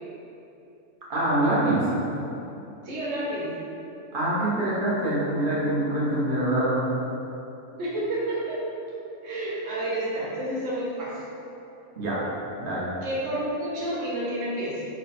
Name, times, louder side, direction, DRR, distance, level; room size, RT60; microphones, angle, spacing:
voice 1, 1.1-1.8 4.1-6.8 12.0-12.2 12.6-12.9, right 1 dB, 50° right, -8 dB, 0.9 m, -24 dB
voice 2, 2.8-3.5 7.8-8.6 9.2-11.2 13.0-14.8, right 1 dB, 75° right, -7 dB, 1.2 m, -30 dB
3.2 x 2.1 x 4.0 m, 2.8 s
omnidirectional pair, 1.3 m